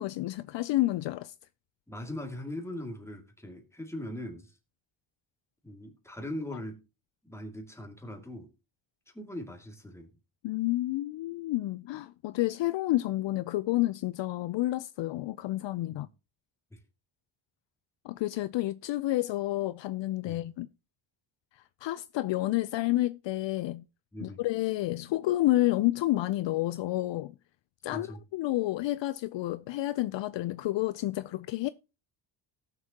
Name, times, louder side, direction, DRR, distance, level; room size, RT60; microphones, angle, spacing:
voice 1, 0.0-1.3 10.4-16.1 18.0-20.7 21.8-23.8 24.2-27.3 27.8-31.7, left 16 dB, 65° left, 0.5 m, -30 dB
voice 2, 1.9-4.5 5.6-6.8 7.2-8.5 9.1-10.1 16.0-16.1 16.7-16.8 20.2-20.4 24.1-24.4 27.9-28.2, left 1 dB, 5° left, 2.3 m, -40 dB
18.0 x 6.9 x 2.9 m
cardioid pair, 115°, 48 cm